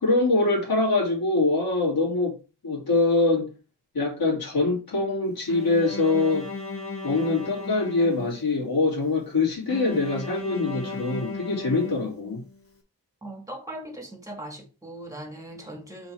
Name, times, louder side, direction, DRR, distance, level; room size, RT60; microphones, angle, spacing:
voice 1, 0.0-2.4 2.6-3.5 3.9-6.5 7.0-12.4, left 3 dB, 65° left, 2.8 m, -24 dB
Bowed string instrument, 5.5-8.7 9.7-12.6, left 3 dB, 35° left, 1.7 m, -36 dB
voice 2, 13.2-16.1, right 1 dB, 10° right, 1.9 m, -39 dB
7.7 x 4.1 x 4.3 m
wide cardioid pair, 130°, 39 cm